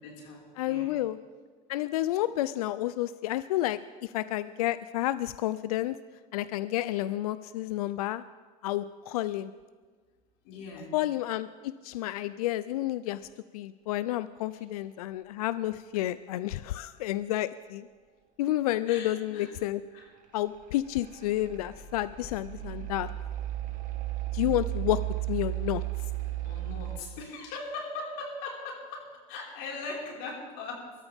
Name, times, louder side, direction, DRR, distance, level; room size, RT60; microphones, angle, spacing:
voice 1, 0.0-1.0 10.4-11.0 18.9-19.5 19.9-20.1 22.6-22.9 26.4-30.8, left 3 dB, 70° left, -3 dB, 5.0 m, -40 dB
voice 2, 0.6-1.2 1.7-6.0 6.3-8.2 8.6-9.5 10.9-13.2 13.5-17.9 18.4-19.8 20.3-23.1 24.3-25.0 25.3-25.8, left 14 dB, 85° left, 15 dB, 0.4 m, -30 dB
sound 1, 20.6-27.0, right 16 dB, 45° right, 2.1 m, -34 dB
24.0 x 13.5 x 3.6 m, 1.5 s
hypercardioid pair, 85°, 19 cm